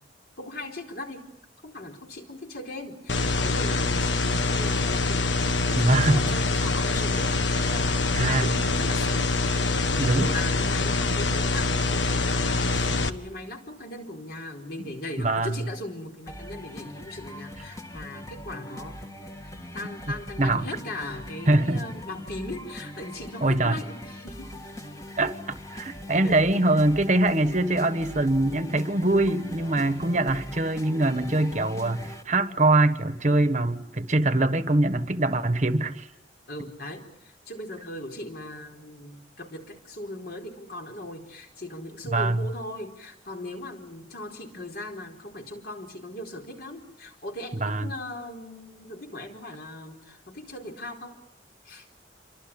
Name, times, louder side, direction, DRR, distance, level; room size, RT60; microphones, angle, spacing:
voice 1, 0.4-1.3 1.6-7.4 7.6-9.3 10.0-19.0 19.4-24.5 26.2-26.4 36.5-51.2 51.6-51.9, left 1 dB, 55° left, 4.3 m, -39 dB
sound 1, 3.1-13.1, left 3 dB, 85° left, 1.5 m, -25 dB
voice 2, 5.7-6.2 8.1-8.5 10.0-10.3 15.2-15.6 20.4-20.6 21.5-21.8 23.4-23.8 25.2-25.3 25.7-36.1 42.1-42.5 47.6-47.9, right 2 dB, 40° right, 1.3 m, -23 dB
sound 2, 16.3-32.2, left 1 dB, 15° left, 1.7 m, -41 dB
28.0 x 24.5 x 8.7 m
head